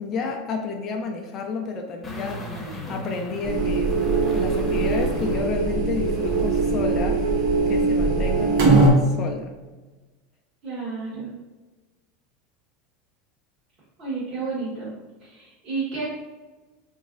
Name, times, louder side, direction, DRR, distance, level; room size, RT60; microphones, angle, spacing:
voice 1, 0.0-3.9 4.4-7.2 7.7-9.5, left 4 dB, 40° left, 2 dB, 0.4 m, -31 dB
sound 1, 2.0-6.9 7.3-7.4, left 1 dB, 15° left, 0.8 m, -37 dB
sound 2, 3.4-8.9, right 3 dB, 70° right, 0.8 m, -21 dB
voice 2, 10.6-11.3 14.0-14.9 15.2-16.1, right 4 dB, 45° right, -10 dB, 1.4 m, -31 dB
3.6 x 3.1 x 2.4 m, 1.2 s
supercardioid pair, 120°, 0 cm